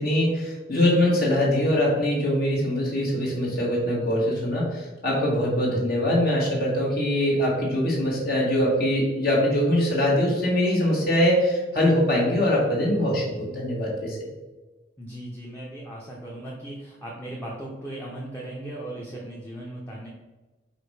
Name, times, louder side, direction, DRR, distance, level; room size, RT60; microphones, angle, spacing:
voice 1, 0.0-14.3, left 1 dB, 50° left, -4 dB, 1.6 m, -23 dB
voice 2, 15.0-20.1, right 1 dB, 10° left, -5 dB, 0.8 m, -37 dB
4.9 x 4.2 x 4.9 m, 1.2 s
head